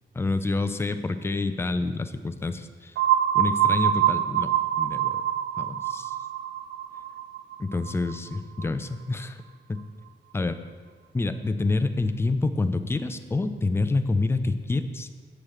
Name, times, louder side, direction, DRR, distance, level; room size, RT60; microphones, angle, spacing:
voice 1, 0.1-2.9 3.3-5.2 5.6-6.1 7.6-9.4 10.3-10.6 11.1-15.2, left 3 dB, 15° left, 9 dB, 0.4 m, -27 dB
sound 1, 2.9-8.6, right 11 dB, 75° right, 0.5 m, -25 dB
7.7 x 7.2 x 5.0 m, 1.5 s
wide cardioid pair, 155°, 19 cm